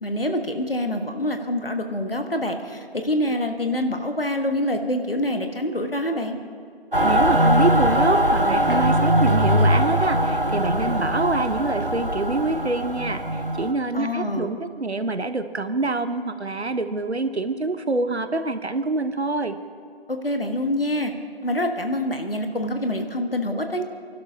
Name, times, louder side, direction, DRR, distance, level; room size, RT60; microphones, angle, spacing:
voice 1, 0.0-6.4 13.9-14.5 20.1-21.1 21.4-23.8, left 1 dB, 60° left, 5 dB, 1.4 m, -26 dB
Mechanical fan, 6.9-13.7, right 1 dB, 55° right, 1.2 m, -21 dB
voice 2, 7.0-19.6, right 3 dB, 85° right, 10 dB, 1.0 m, -26 dB
29.0 x 12.0 x 2.8 m, 2.5 s
figure-of-eight pair, 180°, 32 cm